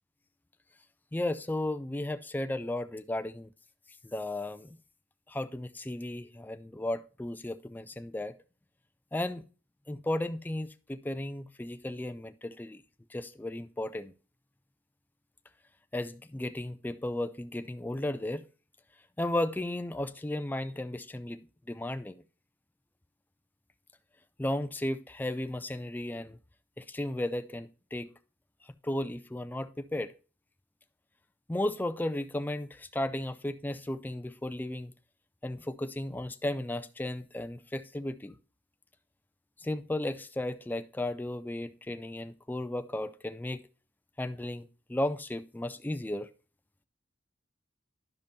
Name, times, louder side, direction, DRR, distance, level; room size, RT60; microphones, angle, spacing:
voice 1, 1.1-3.5 4.0-4.8 5.3-8.3 9.1-9.4 9.9-12.8 13.1-14.1 15.9-18.4 19.2-22.2 24.4-26.4 26.8-28.1 28.8-30.1 31.5-34.9 35.4-38.3 39.6-43.6 44.2-46.3, left 1 dB, 10° left, 0.3 m, -34 dB
11.5 x 5.2 x 2.7 m
head